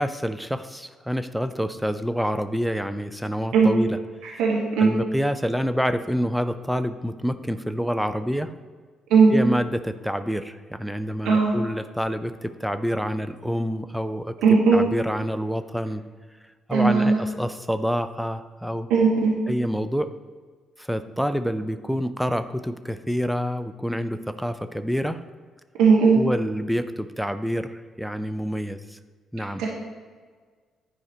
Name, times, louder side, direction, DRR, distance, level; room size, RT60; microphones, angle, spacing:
voice 1, 0.0-3.9 4.3-4.4 4.8-8.5 9.3-14.3 14.7-16.0 16.7-18.9 19.5-20.1 20.8-25.2 26.2-29.0 29.3-29.7, equal, 5° right, 11 dB, 0.6 m, -27 dB
voice 2, 4.2-4.9 9.1-9.3 11.3-11.5 14.4-14.8 16.7-17.2 18.9-19.3 25.8-26.2 29.6-29.7, right 5 dB, 70° right, -3 dB, 1.7 m, -18 dB
10.5 x 4.9 x 4.3 m, 1.5 s
hypercardioid pair, 45°, 0 cm